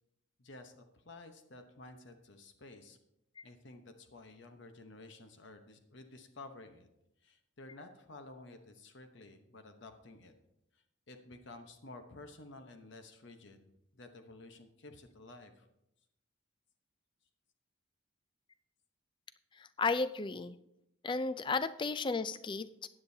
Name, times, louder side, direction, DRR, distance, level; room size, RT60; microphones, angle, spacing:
voice 1, 0.4-3.0 3.4-6.9 7.2-10.3 10.7-15.7, left 2 dB, 60° left, 6 dB, 0.9 m, -53 dB
voice 2, 19.8-20.6 21.0-22.9, left 4 dB, 25° left, 13 dB, 0.3 m, -33 dB
15.5 x 9.7 x 2.7 m, 0.84 s
head